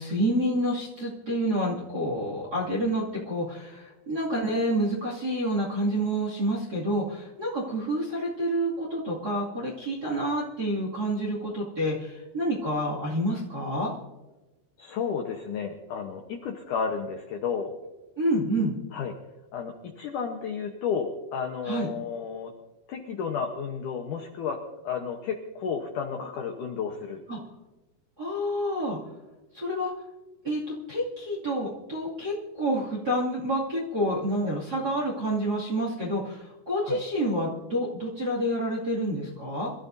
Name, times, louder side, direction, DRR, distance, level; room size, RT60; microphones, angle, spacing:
voice 1, 0.0-13.9 18.2-18.7 21.6-21.9 27.3-27.4 28.2-29.0 29.5-29.9 30.4-30.6 30.9-39.7, equal, 30° right, -3 dB, 2.0 m, -28 dB
voice 2, 14.8-17.7 18.9-19.1 19.5-22.5 22.9-27.2 36.8-37.0, left 6 dB, 80° left, 3 dB, 1.8 m, -32 dB
26.0 x 14.0 x 2.7 m, 1.1 s
omnidirectional pair, 5.2 m